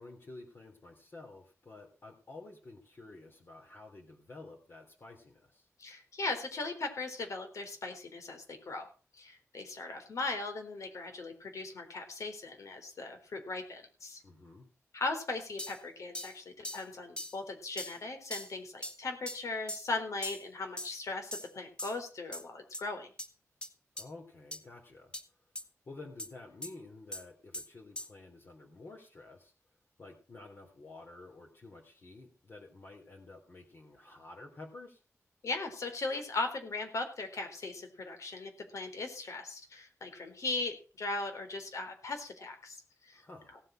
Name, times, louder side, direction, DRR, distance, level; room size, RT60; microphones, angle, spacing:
voice 1, 0.0-5.7 14.2-14.7 24.0-25.2 25.9-29.5 30.0-35.0 43.1-43.6, left 2 dB, 45° left, -1 dB, 3.4 m, -51 dB
voice 2, 5.8-8.9 9.1-14.2 14.9-23.1 35.4-43.2, left 3 dB, 75° left, 6 dB, 3.9 m, -38 dB
sound 1, 15.6-15.8 16.1-16.3 16.6-16.8 17.2-17.4 17.8-18.0 18.3-18.5 18.8-19.0 19.3-19.4 19.7-19.9 20.2-20.4 20.8-21.0 21.3-21.5 21.8-22.0 22.3-22.4 22.7-22.8 23.2-23.3 23.6-23.7 24.0-24.1 24.5-24.6 25.1-25.2 25.6-25.7 26.2-26.3 26.6-26.7 27.1-27.2 27.5-27.7 28.0-28.1, left 1 dB, 15° left, 1.8 m, -40 dB
17.0 x 7.6 x 6.4 m, 0.36 s
wide cardioid pair, 115°, 5 cm